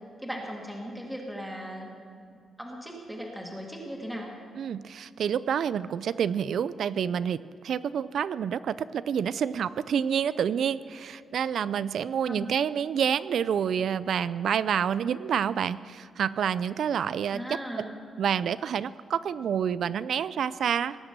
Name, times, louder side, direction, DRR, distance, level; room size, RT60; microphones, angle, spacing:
voice 1, 0.2-1.9 2.6-4.3 12.3-12.5 17.3-18.0, equal, ahead, -2 dB, 2.1 m, -37 dB
voice 2, 4.6-17.4 18.2-21.0, right 8 dB, 65° right, 16 dB, 0.4 m, -28 dB
18.5 x 8.8 x 6.7 m, 2.3 s
wide cardioid pair, 140°, 0 cm